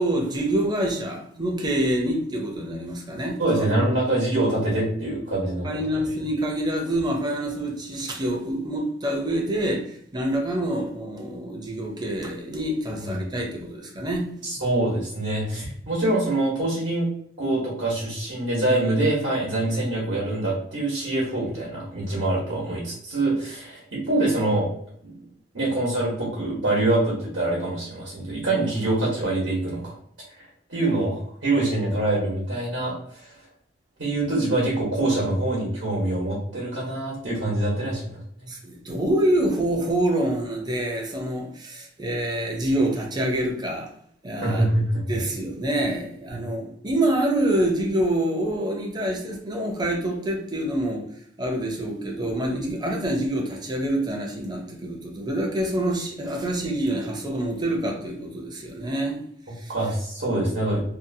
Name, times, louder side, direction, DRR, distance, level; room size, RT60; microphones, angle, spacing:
voice 1, 0.0-3.7 5.6-14.3 38.5-43.9 44.2-44.7 45.1-51.1 51.4-59.2 59.6-59.7, right 1 dB, 25° right, 0.5 m, -26 dB
voice 2, 3.4-5.7 5.9-6.0 13.0-13.3 14.4-17.1 17.4-24.7 25.0-25.1 25.5-29.9 30.7-33.3 34.0-38.2 44.4-45.0 59.5-60.8, right 2 dB, 85° right, 1.1 m, -25 dB
2.6 x 2.3 x 2.6 m
head